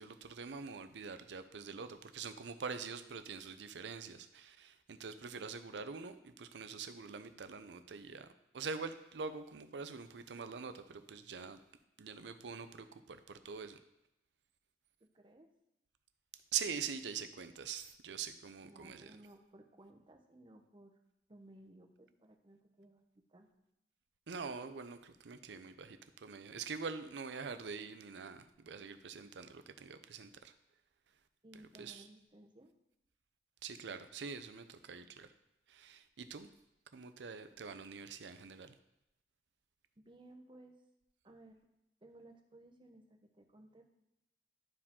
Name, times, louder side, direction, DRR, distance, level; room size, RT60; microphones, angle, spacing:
voice 1, 0.0-8.3 8.5-11.6 12.0-13.8 16.5-19.2 24.3-30.5 31.5-32.1 33.6-35.3 35.7-36.5 36.9-38.8, right 5 dB, 80° right, 10 dB, 0.5 m, -44 dB
voice 2, 15.0-15.5 18.7-20.9 21.3-23.5 31.4-32.7 35.0-35.1 40.0-40.8 41.2-41.7 42.0-43.9, right 1 dB, 30° right, 3 dB, 0.8 m, -59 dB
11.5 x 4.7 x 3.7 m, 0.88 s
head